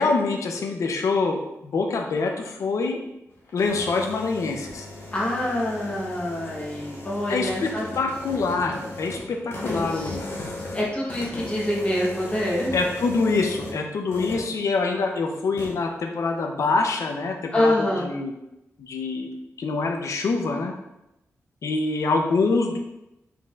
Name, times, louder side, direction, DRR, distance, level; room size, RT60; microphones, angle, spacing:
voice 1, 0.0-1.4 1.6-3.0 3.5-4.9 7.3-7.7 7.9-10.3 12.7-18.3 18.8-19.3 19.6-20.7 21.6-22.8, left 3 dB, 70° left, 3 dB, 0.5 m, -25 dB
sound 1, 3.3-13.8 14.1-14.5 15.6-15.7, left 2 dB, 50° left, 0.9 m, -37 dB
voice 2, 5.1-7.9 9.5-10.4 10.7-12.7 17.5-18.1, left 1 dB, 20° left, -5 dB, 1.0 m, -26 dB
4.6 x 4.0 x 2.4 m, 0.91 s
wide cardioid pair, 175°, 5 cm